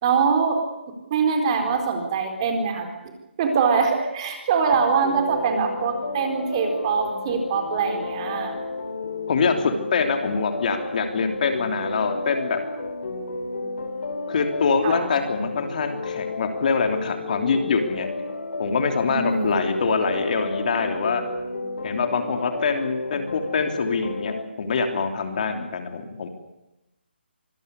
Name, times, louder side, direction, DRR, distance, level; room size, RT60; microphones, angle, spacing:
voice 1, 0.0-0.6 1.1-2.9 3.4-8.6 14.8-15.0 19.1-19.8, right 5 dB, 30° right, 4 dB, 4.4 m, -23 dB
sound 1, 5.0-24.4, left 3 dB, 65° left, 4.3 m, -32 dB
voice 2, 9.3-12.6 14.3-18.1 18.6-21.2 21.8-26.3, left 5 dB, 45° left, 6 dB, 3.2 m, -24 dB
25.0 x 15.5 x 9.9 m, 0.94 s
figure-of-eight pair, 160°, 6 cm